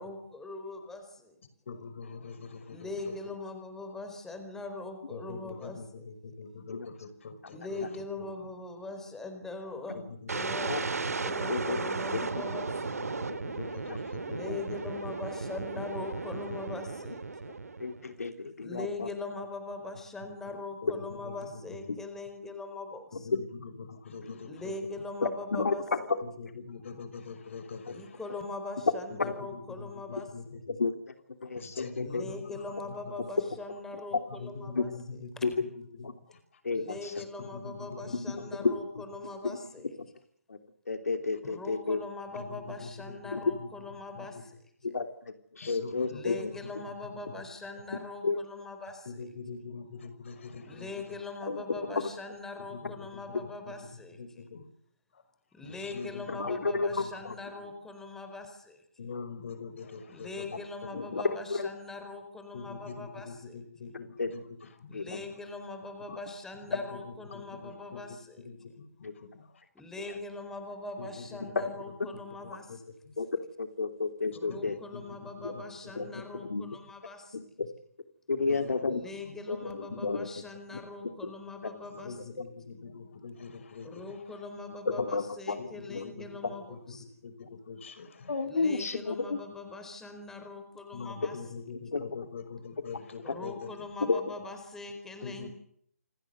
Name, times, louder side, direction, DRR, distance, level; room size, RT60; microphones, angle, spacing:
voice 1, 0.0-1.3 2.7-6.0 7.5-10.0 10.3-10.9 11.2-13.0 14.2-17.5 18.6-23.3 24.4-26.1 27.9-30.3 32.0-34.9 35.4-35.5 36.7-39.9 41.4-44.6 46.1-49.2 50.6-54.2 55.5-58.8 60.1-63.6 64.9-68.4 69.7-72.8 74.3-77.4 78.9-82.2 83.8-87.0 88.4-91.4 93.2-95.5, left 3 dB, 5° left, 6 dB, 4.4 m, -41 dB
voice 2, 1.7-3.1 5.1-8.0 9.9-11.5 12.9-14.4 14.7-14.8 20.8-21.6 23.2-24.7 26.2-28.2 29.2-30.6 31.5-33.0 34.3-36.4 37.1-38.5 42.3-43.7 44.2-44.4 45.6-46.9 47.4-47.5 49.1-51.0 52.7-53.7 54.2-54.6 55.1-55.2 55.6-57.7 59.0-60.6 60.9-61.0 62.5-64.4 64.8-65.2 66.7-68.0 68.4-69.6 71.0-71.4 72.1-72.2 72.7-72.8 73.0-73.1 74.5-76.1 78.4-79.4 82.0-84.1 85.5-87.0 87.2-88.3 90.9-93.7 95.2-95.5, left 4 dB, 55° left, 11 dB, 5.8 m, -44 dB
sound 1, 10.3-18.1, right 4 dB, 75° right, 3.1 m, -35 dB
voice 3, 17.8-19.1 21.9-22.0 25.2-25.7 27.9-28.0 29.2-29.3 30.7-30.9 31.4-32.3 34.7-34.8 35.4-35.5 36.0-36.1 36.6-37.2 38.1-38.7 39.4-39.6 40.5-40.6 40.9-42.0 43.3-43.4 44.8-46.4 48.2-48.4 51.5-51.8 56.4-57.3 60.9-61.7 64.2-64.3 64.9-65.2 69.0-69.1 73.2-73.3 73.6-74.8 75.4-75.5 76.0-76.7 77.3-77.7 78.3-79.1 79.5-80.3 81.2-81.3 84.9-86.1 88.3-89.4 91.9-92.0 93.3-93.4 94.1-94.2, left 4 dB, 75° left, 7 dB, 3.3 m, -32 dB
28.0 x 18.5 x 8.1 m, 0.67 s
figure-of-eight pair, 150°, 8 cm